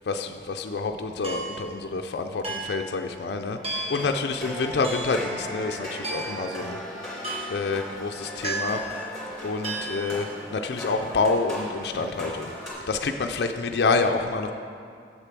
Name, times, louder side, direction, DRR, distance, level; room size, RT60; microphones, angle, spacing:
voice 1, 0.1-6.8 7.5-8.8 9.4-10.3 10.5-12.5 12.9-14.5, left 4 dB, 65° left, 5 dB, 0.4 m, -27 dB
sound 1, 1.2-1.7 2.4-2.9 3.6-4.1 4.8-5.2 6.0-6.5 7.2-7.7 8.4-9.0 9.6-10.1, right 2 dB, 35° right, 1.0 m, -33 dB
sound 2, 3.8-12.7, equal, 5° left, 2.4 m, -37 dB
7.5 x 6.7 x 6.0 m, 2.3 s
head